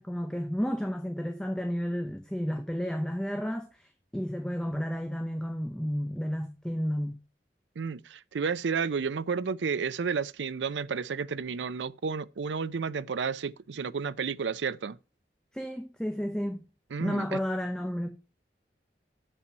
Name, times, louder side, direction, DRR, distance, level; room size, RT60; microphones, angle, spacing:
voice 1, 0.0-7.2 15.5-16.7 17.0-18.1, equal, 5° left, 0.7 m, -32 dB
voice 2, 7.8-15.0 16.9-17.4, right 5 dB, 90° right, 0.5 m, -31 dB
6.8 x 5.5 x 5.9 m
head